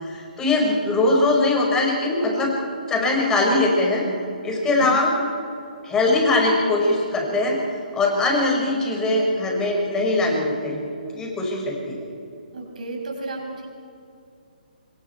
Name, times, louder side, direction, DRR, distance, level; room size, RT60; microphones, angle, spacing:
voice 1, 0.0-2.5 2.9-4.1 4.4-5.1 5.8-7.6 7.9-12.1, left 2 dB, 10° left, 0 dB, 5.2 m, -21 dB
voice 2, 12.5-13.7, right 3 dB, 55° right, 1 dB, 5.7 m, -32 dB
27.0 x 23.5 x 4.5 m, 2.6 s
figure-of-eight pair, 135°, 5 cm